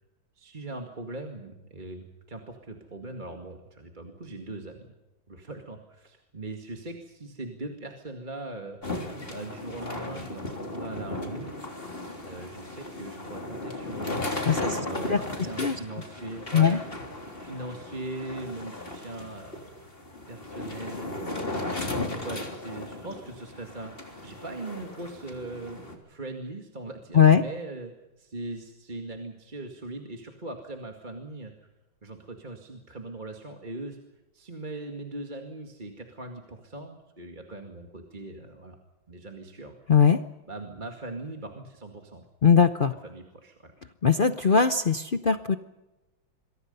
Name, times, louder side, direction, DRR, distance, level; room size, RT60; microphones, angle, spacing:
voice 1, 0.4-4.9 5.3-8.8 9.3-11.6 12.2-14.2 14.6-16.8 17.4-19.7 20.3-21.8 22.1-31.5 32.0-34.0 34.3-38.8 39.1-39.8 40.5-42.2 43.0-43.7, right 2 dB, 25° right, 3 dB, 2.2 m, -40 dB
sound 1, 8.8-25.9, left 2 dB, 25° left, 3.6 m, -36 dB
voice 2, 14.5-14.8 15.1-15.2 15.6-15.8 16.5-16.8 27.1-27.4 39.9-40.2 42.4-42.9 44.0-45.5, left 6 dB, 80° left, 10 dB, 0.4 m, -20 dB
27.5 x 23.0 x 5.5 m, 1.0 s
omnidirectional pair, 2.2 m